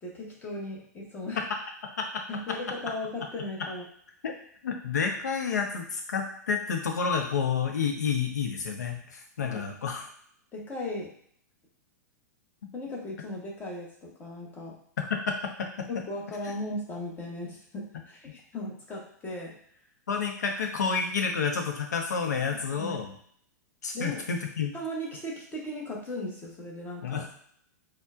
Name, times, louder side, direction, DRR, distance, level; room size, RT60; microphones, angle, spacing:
voice 1, 0.0-1.4 2.3-3.9 9.4-9.6 10.5-11.1 12.7-14.7 15.9-19.6 22.5-23.0 23.9-24.2 24.7-27.2, left 1 dB, 20° left, -3 dB, 1.1 m, -37 dB
voice 2, 4.6-10.1 15.0-15.8 16.4-16.5 20.1-23.1 23.8-24.7 27.0-27.3, left 6 dB, 70° left, 3 dB, 0.7 m, -30 dB
4.3 x 2.2 x 2.4 m, 0.64 s
figure-of-eight pair, 105°, 10 cm